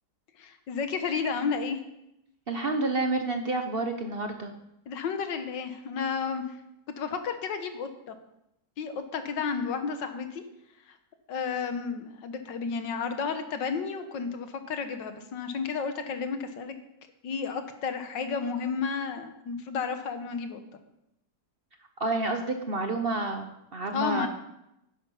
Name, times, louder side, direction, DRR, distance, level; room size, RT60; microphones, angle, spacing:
voice 1, 0.4-1.8 4.9-6.6 7.0-8.1 8.8-10.4 10.9-11.0 11.3-16.7 17.2-20.6 23.9-24.3, left 5 dB, 85° left, 8 dB, 1.8 m, -32 dB
voice 2, 2.5-4.5 22.0-24.3, right 2 dB, 40° right, 5 dB, 0.9 m, -29 dB
11.0 x 10.5 x 5.6 m, 0.84 s
omnidirectional pair, 1.9 m